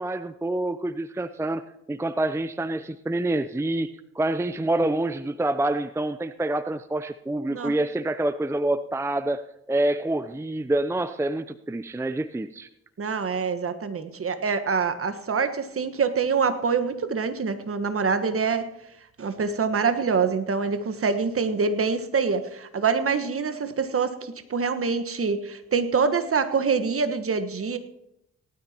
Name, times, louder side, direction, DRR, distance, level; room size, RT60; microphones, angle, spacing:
voice 1, 0.0-1.6 1.9-3.9 4.2-12.7, right 1 dB, 10° right, 13 dB, 0.5 m, -27 dB
voice 2, 13.0-18.6 19.2-27.8, right 5 dB, 45° right, 10 dB, 1.4 m, -25 dB
18.5 x 12.5 x 3.0 m, 0.82 s
hypercardioid pair, 45°, 32 cm